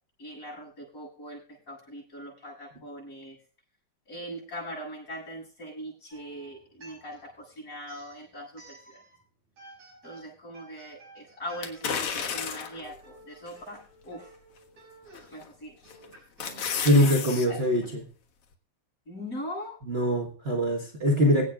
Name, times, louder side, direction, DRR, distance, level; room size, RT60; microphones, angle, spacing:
voice 1, 0.2-3.4 4.0-9.0 10.0-14.3 15.3-15.8 17.5-17.6 19.0-19.8, equal, 25° left, -4 dB, 8.6 m, -41 dB
sound 1, 6.1-7.4 7.8-9.2 9.6-17.0, right 2 dB, 60° right, 6.9 m, -53 dB
sound 2, 11.6-12.9 13.5-13.6 15.1-15.5 15.9-17.5 17.8-17.9, left 7 dB, 55° left, 2.2 m, -32 dB
voice 2, 16.8-17.8 19.9-21.5, equal, 85° right, 0 dB, 0.5 m, -22 dB
25.5 x 8.5 x 2.4 m, 0.40 s
omnidirectional pair, 3.5 m